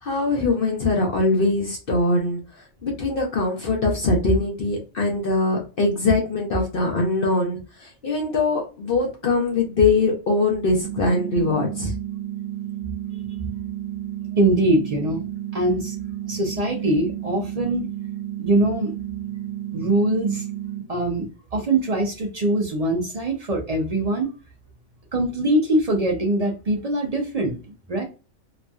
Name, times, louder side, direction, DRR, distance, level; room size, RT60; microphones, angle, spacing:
voice 1, 0.0-11.9, left 3 dB, 50° left, 0 dB, 0.8 m, -22 dB
sound 1, 10.8-20.8, right 12 dB, 80° right, 1.0 m, -32 dB
voice 2, 14.3-15.9 16.3-17.8 18.4-18.9 19.7-20.5 20.9-24.3 25.1-28.0, right 1 dB, 55° right, 1 dB, 0.4 m, -23 dB
3.0 x 2.6 x 2.2 m, 0.32 s
omnidirectional pair, 1.4 m